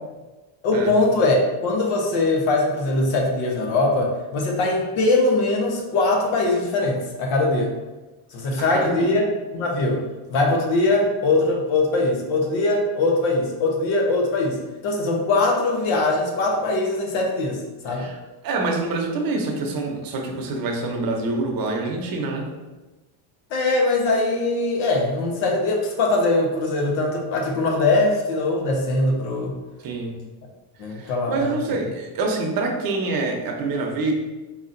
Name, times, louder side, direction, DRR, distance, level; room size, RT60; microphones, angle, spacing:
voice 1, 0.6-7.7 8.3-14.6 14.8-18.1 23.5-29.5 30.8-31.5, left 2 dB, 70° left, 0 dB, 1.0 m, -21 dB
voice 2, 8.6-9.2 17.9-18.2 18.4-22.5 29.8-30.1 30.9-34.1, right 3 dB, 45° right, 1 dB, 0.8 m, -26 dB
4.0 x 2.9 x 2.6 m, 1.2 s
cardioid pair, 115°, 50 cm